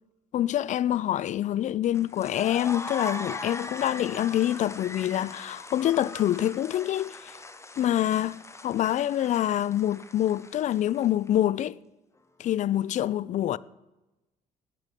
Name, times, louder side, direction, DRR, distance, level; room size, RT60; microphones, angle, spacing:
voice 1, 0.3-7.3 7.8-11.8 12.4-13.6, left 12 dB, 50° left, 0.4 m, -26 dB
sound 1, 1.9-11.3, left 2 dB, 15° left, 0.9 m, -40 dB
16.5 x 5.9 x 5.1 m
supercardioid pair, 70°, 16 cm